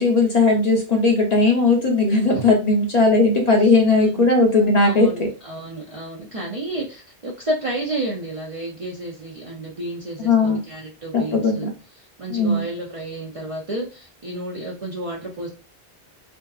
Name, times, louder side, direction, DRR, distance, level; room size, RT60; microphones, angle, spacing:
voice 1, 0.0-5.3 10.2-10.6 11.1-11.7 12.3-12.7, left 3 dB, 50° left, 1 dB, 0.6 m, -18 dB
voice 2, 4.8-11.7 12.2-15.5, right 1 dB, 50° right, -2 dB, 0.4 m, -31 dB
2.6 x 2.4 x 2.3 m, 0.33 s
omnidirectional pair, 1.0 m